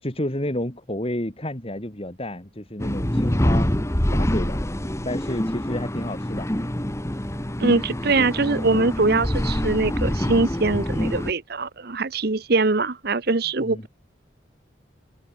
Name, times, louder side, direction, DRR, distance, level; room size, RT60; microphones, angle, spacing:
voice 1, 0.0-3.7 4.1-4.6 5.0-6.9 13.6-13.8, left 1 dB, 30° left, 3.5 m, -30 dB
sound 1, 2.8-11.3, equal, 15° left, 1.4 m, -25 dB
voice 2, 7.6-13.9, right 3 dB, 55° right, 1.1 m, -22 dB
head